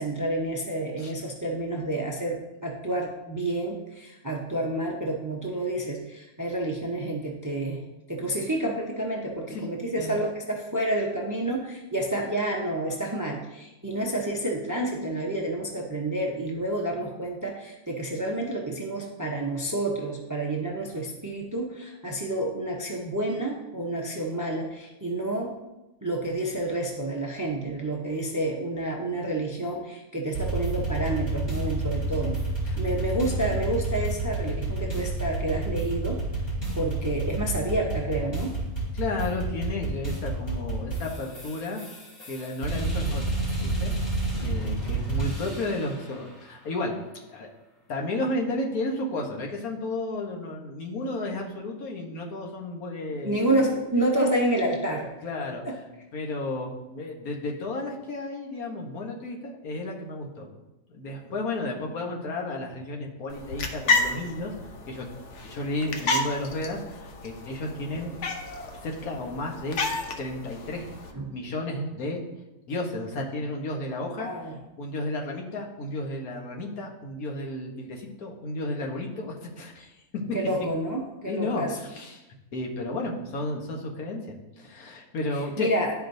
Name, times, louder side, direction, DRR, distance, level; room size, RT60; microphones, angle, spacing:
voice 1, 0.0-25.5 26.0-32.4 32.7-36.2 36.8-38.5 53.2-55.1 55.6-55.8 71.1-71.3 74.2-74.6 80.3-81.8 85.6-86.0, right 1 dB, 20° right, -1 dB, 0.5 m, -29 dB
sound 1, 30.3-45.9, right 2 dB, 40° left, 2.5 m, -29 dB
voice 2, 31.9-32.8 38.9-41.8 42.3-43.4 43.6-43.9 44.4-47.0 47.3-47.5 47.9-53.4 55.2-55.6 56.1-60.5 60.9-64.5 64.9-65.1 65.4-68.1 68.8-69.8 70.2-70.9 71.3-72.2 72.7-74.3 74.8-80.2 81.3-82.2 82.5-85.7, left 2 dB, 80° left, 0 dB, 1.5 m, -33 dB
sound 2, 63.3-71.1, left 3 dB, 60° left, 1.0 m, -31 dB
11.5 x 4.7 x 2.6 m, 1.0 s
omnidirectional pair, 1.5 m